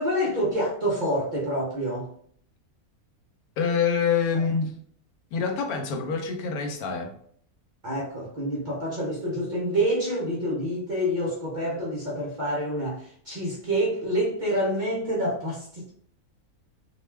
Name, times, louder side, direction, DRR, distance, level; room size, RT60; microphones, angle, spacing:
voice 1, 0.0-2.1 4.3-4.4 7.8-15.9, equal, 50° right, -4 dB, 0.6 m, -27 dB
voice 2, 3.6-4.8 5.3-7.2, left 6 dB, 90° left, 4 dB, 1.1 m, -26 dB
2.4 x 2.3 x 3.2 m, 0.63 s
omnidirectional pair, 1.5 m